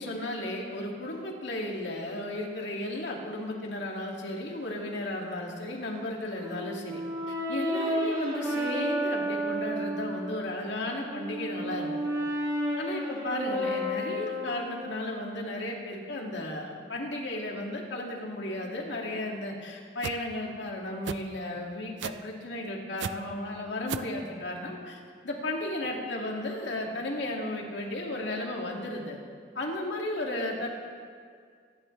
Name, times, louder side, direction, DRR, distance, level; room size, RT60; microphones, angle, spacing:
voice 1, 0.0-7.0 7.3-12.1 12.8-25.0 25.2-29.2 29.5-30.7, left 1 dB, 90° left, -1 dB, 2.3 m, -34 dB
Brass instrument, 6.4-10.4 10.9-15.0, equal, 25° right, 4.4 m, -32 dB
sound 1, 20.0-20.2 21.0-21.2 22.0-22.3 23.0-23.1 23.9-24.1, right 7 dB, 90° right, 0.4 m, -33 dB
25.0 x 11.0 x 3.3 m, 2.1 s
head